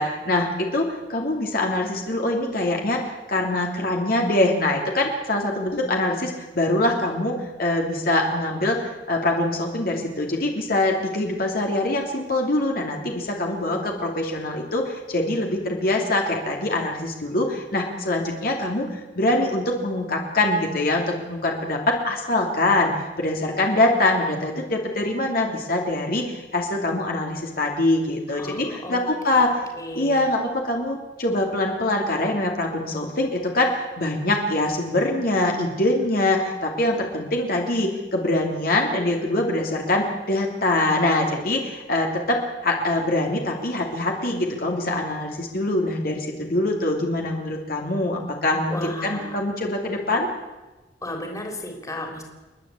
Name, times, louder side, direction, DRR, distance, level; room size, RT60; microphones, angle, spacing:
voice 1, 0.0-22.9 23.2-29.5 29.9-50.3, left 2 dB, 55° left, 1 dB, 3.0 m, -24 dB
voice 2, 28.3-29.0 29.3-30.3 48.7-49.4 51.0-52.2, left 1 dB, 20° left, 2 dB, 3.4 m, -34 dB
29.5 x 11.0 x 8.5 m, 1.1 s
head